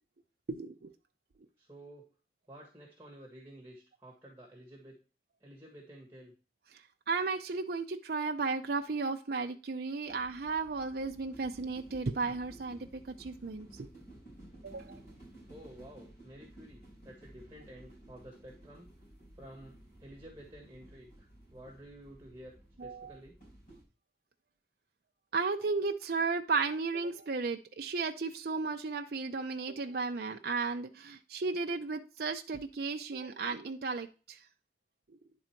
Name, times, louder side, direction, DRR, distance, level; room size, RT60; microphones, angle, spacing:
voice 1, 0.5-0.9 7.1-13.9 14.6-15.0 22.8-23.1 25.3-34.4 35.1-35.2, right 4 dB, 60° right, 4 dB, 0.5 m, -34 dB
voice 2, 1.6-2.1 2.5-5.0 5.4-6.3 15.5-18.8 19.3-23.4, equal, 15° right, -1 dB, 1.4 m, -52 dB
sound 1, 10.1-23.8, right 1 dB, 45° left, 4.3 m, -55 dB
10.0 x 4.0 x 4.4 m, 0.35 s
head